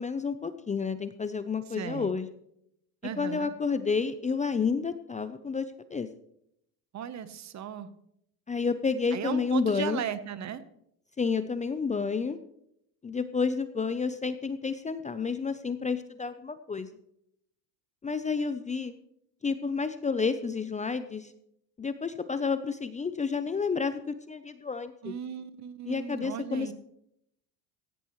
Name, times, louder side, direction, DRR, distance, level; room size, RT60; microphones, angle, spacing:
voice 1, 0.0-2.3 3.2-6.1 8.5-10.0 11.2-12.4 13.0-16.9 18.0-18.9 19.4-21.3 21.8-25.1 25.9-26.7, left 5 dB, 15° left, 11 dB, 0.6 m, -30 dB
voice 2, 1.7-2.1 3.0-3.5 6.9-7.9 9.1-10.6 25.0-26.7, right 9 dB, 35° right, 14 dB, 1.1 m, -36 dB
16.5 x 16.0 x 3.2 m, 0.76 s
supercardioid pair, 100°, 45 cm